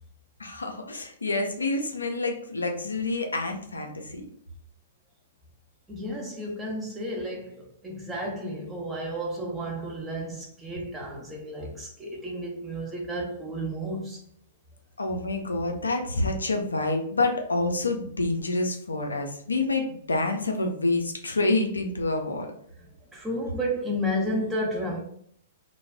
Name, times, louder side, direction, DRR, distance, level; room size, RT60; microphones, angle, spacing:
voice 1, 0.4-4.3 15.0-22.5, left 2 dB, 80° left, 0.4 m, -27 dB
voice 2, 5.9-14.2 22.9-25.0, equal, 10° right, 0.7 m, -32 dB
2.3 x 2.0 x 3.3 m
figure-of-eight pair, 110°, 0 cm